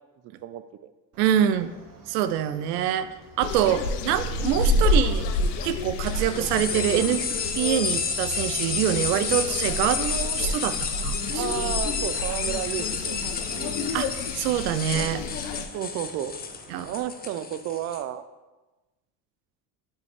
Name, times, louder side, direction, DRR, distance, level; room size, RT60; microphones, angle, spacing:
Chicken rooster, 1.1-17.0, right 3 dB, 60° right, 1.5 m, -50 dB
voice 1, 1.2-1.7 2.1-3.1 3.4-5.3 5.6-7.3 7.5-10.8 11.0-11.4 13.9-14.1 14.4-15.2 16.7-16.9, right 10 dB, 85° right, 12 dB, 0.5 m, -25 dB
sound 1, 3.4-15.7, left 3 dB, 90° left, 0.6 m, -29 dB
sound 2, 6.1-18.0, left 5 dB, 20° left, 0.6 m, -31 dB
voice 2, 11.3-13.2 13.5-13.8 15.7-16.3 16.8-18.2, right 11 dB, 35° right, 12 dB, 0.4 m, -32 dB
7.1 x 4.8 x 3.2 m, 1.1 s
hypercardioid pair, 75°, 46 cm